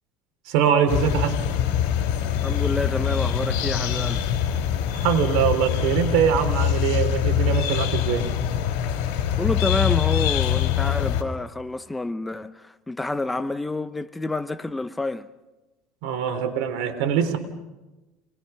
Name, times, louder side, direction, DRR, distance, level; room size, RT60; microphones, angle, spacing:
voice 1, 0.5-1.4 5.0-8.3 16.0-17.4, right 8 dB, 70° right, 3.6 m, -22 dB
sound 1, 0.9-11.2, left 10 dB, 75° left, 3.9 m, -24 dB
voice 2, 2.4-4.3 9.3-15.3, left 2 dB, 10° left, 0.8 m, -28 dB
27.5 x 20.5 x 5.8 m
supercardioid pair, 130°, 0 cm